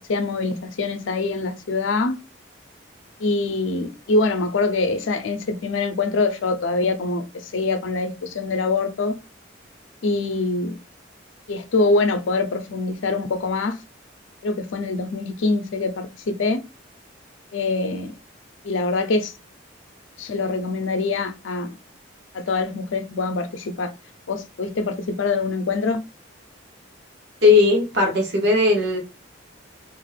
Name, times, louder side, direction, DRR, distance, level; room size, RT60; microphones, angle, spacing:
voice 1, 0.1-2.2 3.2-9.1 10.0-10.8 11.5-13.8 14.4-16.6 17.5-18.1 18.6-19.3 20.2-21.7 22.3-23.9 24.3-26.0, left 3 dB, 80° left, 0.5 m, -24 dB
voice 2, 27.4-29.0, left 3 dB, 60° right, 0.9 m, -17 dB
2.5 x 2.3 x 3.2 m
head